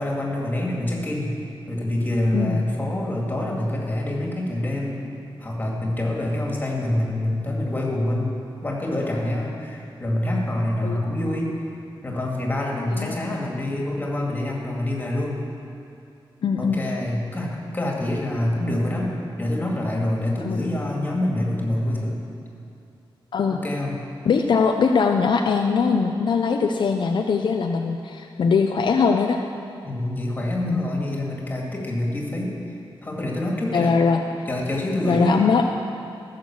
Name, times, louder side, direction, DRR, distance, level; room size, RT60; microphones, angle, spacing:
voice 1, 0.0-1.3 1.7-5.0 5.4-8.4 8.6-11.5 12.0-15.4 16.6-19.1 19.4-22.2 23.5-23.9 29.8-32.6 33.0-34.0 34.5-35.4, left 1 dB, 20° left, -2 dB, 2.1 m, -26 dB
voice 2, 16.4-16.8 20.4-20.6 23.3-23.6 24.3-29.4 30.6-30.8 33.7-34.2 35.1-35.6, left 5 dB, 60° left, 3 dB, 0.6 m, -21 dB
15.5 x 6.7 x 7.2 m, 2.8 s
wide cardioid pair, 165°, 9 cm